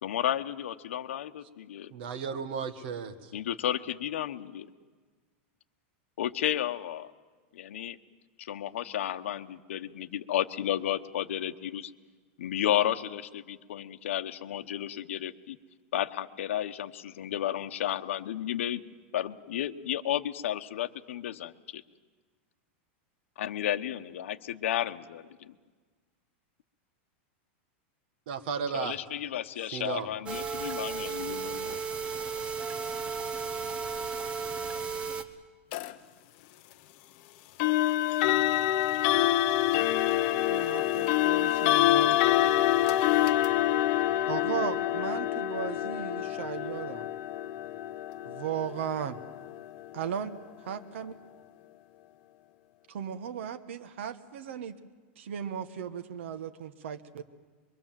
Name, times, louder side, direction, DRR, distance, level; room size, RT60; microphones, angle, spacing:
voice 1, 0.0-1.9 3.3-4.7 6.2-7.1 7.5-8.0 8.4-11.9 12.4-15.6 15.9-18.8 19.1-21.8 23.4-25.5 28.7-31.8, left 11 dB, 85° left, 8 dB, 1.0 m, -32 dB
voice 2, 1.9-3.3 28.3-29.0 29.7-30.1, right 6 dB, 55° right, 9 dB, 1.7 m, -34 dB
sound 1, 30.3-35.2, right 5 dB, 15° right, 0.9 m, -34 dB
sound 2, 35.7-35.9 37.6-50.4, left 14 dB, 40° left, 0.9 m, -27 dB
voice 3, 40.5-42.2 44.3-47.1 48.2-49.2 49.9-51.1 52.9-54.8 55.2-57.2, right 8 dB, 70° right, 9 dB, 1.2 m, -36 dB
24.0 x 23.0 x 7.5 m, 1.4 s
supercardioid pair, 175°, 7 cm